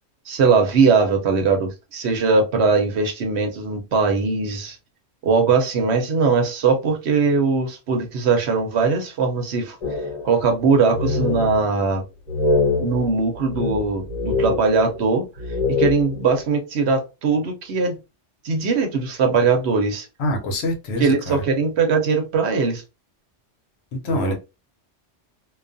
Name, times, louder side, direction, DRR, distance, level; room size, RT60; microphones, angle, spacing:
voice 1, 0.3-4.8 5.2-9.8 10.2-12.0 12.8-15.3 15.7-18.0 18.4-20.1 21.0-22.8 24.0-24.3, right 4 dB, 70° right, 4 dB, 0.9 m, -20 dB
sound 1, 9.8-10.6 10.9-11.8 12.3-15.1 15.4-16.4, left 3 dB, 40° left, 0.9 m, -24 dB
voice 2, 20.2-21.4 24.0-24.3, left 1 dB, 70° left, 4 dB, 0.9 m, -25 dB
2.3 x 2.3 x 2.5 m, 0.27 s
omnidirectional pair, 1.2 m